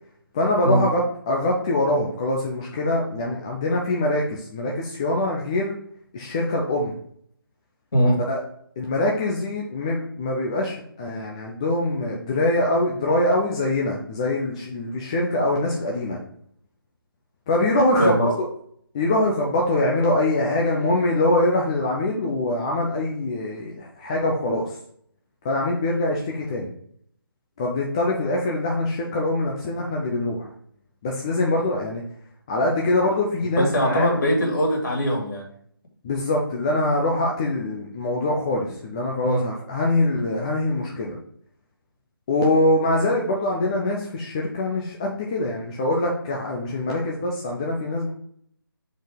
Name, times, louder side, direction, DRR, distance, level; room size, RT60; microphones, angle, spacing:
voice 1, 0.3-5.8 6.1-7.0 8.3-8.4 8.8-16.2 17.5-18.5 18.9-24.7 25.4-26.7 27.6-30.5 31.0-32.0 32.5-34.2 36.0-41.2 42.3-48.1, left 1 dB, 15° left, -2 dB, 0.5 m, -23 dB
voice 2, 18.0-18.3 33.6-35.5 39.2-39.4, equal, 55° left, -1 dB, 2.5 m, -21 dB
5.1 x 4.1 x 5.1 m, 0.64 s
figure-of-eight pair, 165°, 12 cm